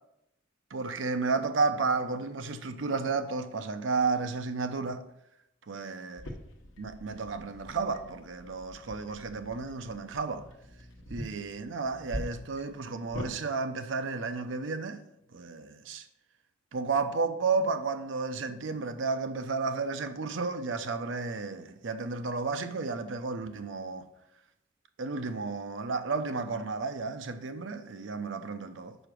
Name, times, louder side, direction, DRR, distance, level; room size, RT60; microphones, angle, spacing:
voice 1, 0.7-5.0 5.7-6.2 6.8-10.4 11.1-15.0 15.3-16.0 16.7-24.1 25.0-29.0, right 4 dB, 75° right, 0.6 m, -32 dB
sound 1, 6.2-13.3, equal, 75° left, 1.0 m, -44 dB
5.0 x 4.9 x 6.1 m
head